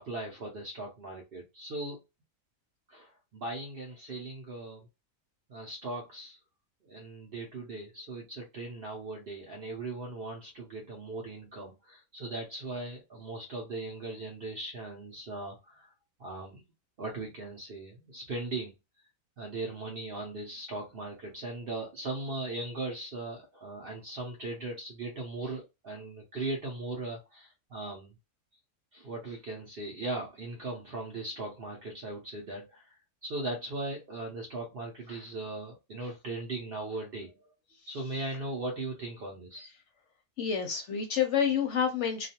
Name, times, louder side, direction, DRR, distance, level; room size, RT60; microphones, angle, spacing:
voice 1, 0.0-2.0 2.9-4.9 5.5-6.4 6.8-15.9 16.2-16.6 17.0-18.7 19.4-28.1 28.9-32.9 33.2-37.3 37.9-39.7, right 2 dB, 55° right, 0.6 m, -38 dB
voice 2, 40.4-42.3, left 7 dB, 65° left, 0.8 m, -28 dB
2.4 x 2.3 x 2.8 m
omnidirectional pair, 1.5 m